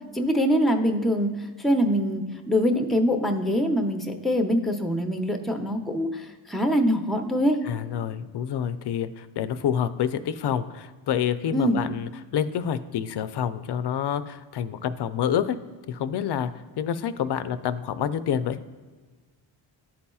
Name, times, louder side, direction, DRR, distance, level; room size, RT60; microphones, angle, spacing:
voice 1, 0.1-7.6 11.5-11.8, equal, ahead, 4 dB, 0.6 m, -24 dB
voice 2, 7.7-15.6 15.9-16.5 16.8-18.6, left 9 dB, 60° left, 13 dB, 0.5 m, -28 dB
11.5 x 4.2 x 2.3 m, 1.4 s
cardioid pair, 80°, 47 cm